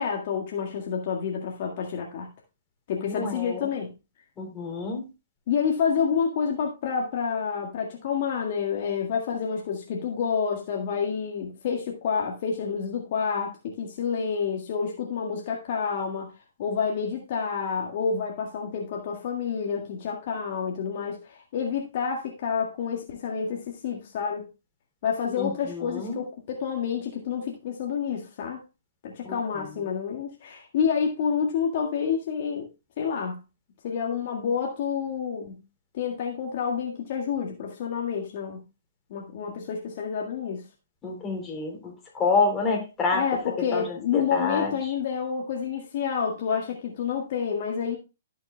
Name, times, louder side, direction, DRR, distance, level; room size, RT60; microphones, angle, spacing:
voice 1, 0.0-2.3 2.9-3.9 5.5-16.3 16.6-24.5 25.0-28.6 29.0-32.7 33.0-33.4 33.8-35.6 35.9-38.6 39.1-40.6 43.1-48.0, left 6 dB, 50° left, 1.9 m, -29 dB
voice 2, 3.0-3.7 4.4-5.1 25.4-26.1 29.2-29.7 41.0-43.2 43.7-43.8 44.1-44.7, left 4 dB, 20° left, 3.5 m, -28 dB
16.5 x 6.2 x 2.3 m
figure-of-eight pair, 120°, 0 cm